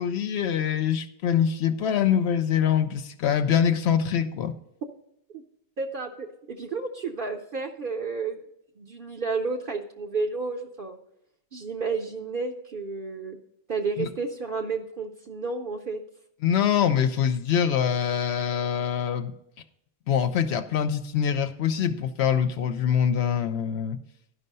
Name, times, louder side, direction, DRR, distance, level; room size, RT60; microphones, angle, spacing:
voice 1, 0.0-4.5 14.0-14.1 16.4-19.3 20.1-24.0, left 8 dB, 80° left, 0.9 m, -24 dB
voice 2, 5.8-8.4 8.8-11.0 11.5-13.4 13.7-16.0, right 4 dB, 55° right, 0.8 m, -31 dB
11.5 x 5.5 x 5.3 m
omnidirectional pair, 1.1 m